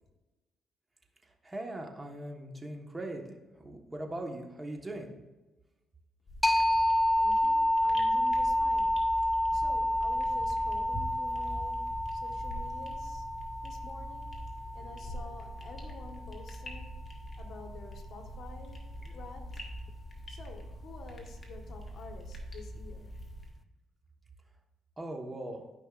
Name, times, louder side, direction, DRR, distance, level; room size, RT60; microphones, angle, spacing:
voice 1, 1.2-5.1 25.0-25.6, right 1 dB, 20° right, 2 dB, 1.3 m, -40 dB
sound 1, 6.3-23.5, equal, 30° left, 1.8 m, -43 dB
sound 2, 6.4-15.8, left 1 dB, 10° left, 0.4 m, -29 dB
voice 2, 7.2-8.9 9.5-11.8 12.1-13.3 13.6-14.3 14.7-17.0 17.4-18.9 19.1-19.6 20.3-23.1 23.6-23.7, left 3 dB, 60° left, 4 dB, 1.4 m, -49 dB
13.0 x 5.4 x 2.5 m, 1.1 s
cardioid pair, 90°, 0 cm